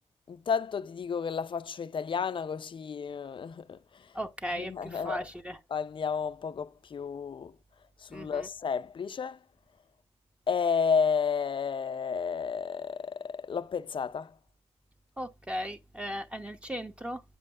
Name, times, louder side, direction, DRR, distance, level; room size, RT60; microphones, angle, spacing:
voice 1, 0.3-3.8 4.5-5.2 5.7-7.5 8.0-9.4 10.5-14.3, left 6 dB, 50° left, 0.5 m, -31 dB
voice 2, 4.1-5.6 8.1-8.5 15.2-17.2, equal, 10° right, 1.0 m, -37 dB
8.5 x 7.5 x 2.4 m
wide cardioid pair, 110°, 11 cm